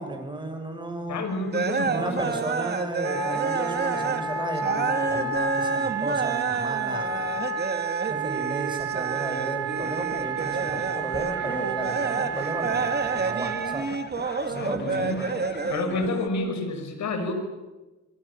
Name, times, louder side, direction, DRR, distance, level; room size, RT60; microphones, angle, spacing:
voice 1, 0.0-1.3 1.9-7.4 8.1-13.9 14.5-15.3, right 2 dB, 15° right, 4 dB, 7.0 m, -34 dB
voice 2, 1.1-2.4 14.5-15.3 15.7-17.3, left 2 dB, 65° left, 7 dB, 6.0 m, -30 dB
sound 1, 1.5-4.2 4.5-16.3, right 4 dB, 35° right, 2.6 m, -30 dB
Wind instrument woodwind instrument, 3.0-13.8, right 5 dB, 55° right, 3.0 m, -30 dB
sound 2, 9.8-16.1, left 6 dB, 35° left, 1.2 m, -40 dB
28.0 x 23.0 x 7.5 m, 1.2 s
cardioid pair, 90°, 30 cm